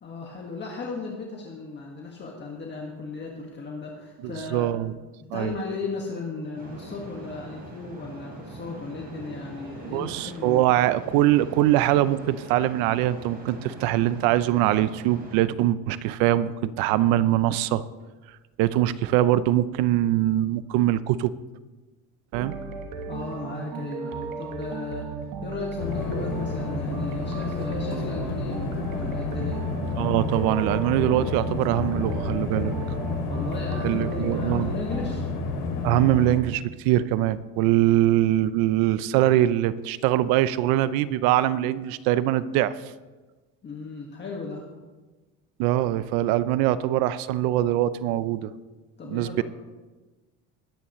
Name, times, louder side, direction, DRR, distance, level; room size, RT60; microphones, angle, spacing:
voice 1, 0.0-4.7 5.2-10.7 23.1-25.1 25.4-29.6 33.3-35.2 43.6-44.6 49.0-49.4, left 3 dB, 30° left, -1 dB, 1.7 m, -36 dB
voice 2, 4.2-4.9 5.3-5.5 9.8-17.8 18.6-21.3 22.3-22.6 30.0-32.7 33.8-34.7 35.8-42.8 45.6-48.5 49.1-49.4, right 13 dB, 90° right, 16 dB, 0.7 m, -23 dB
sound 1, 6.6-15.4, right 2 dB, 25° right, 3.5 m, -42 dB
sound 2, 22.3-35.1, right 5 dB, 65° right, 1.4 m, -36 dB
sound 3, 25.8-36.4, left 4 dB, 70° left, 3.1 m, -30 dB
20.5 x 9.8 x 3.1 m, 1.2 s
cardioid pair, 130°, 34 cm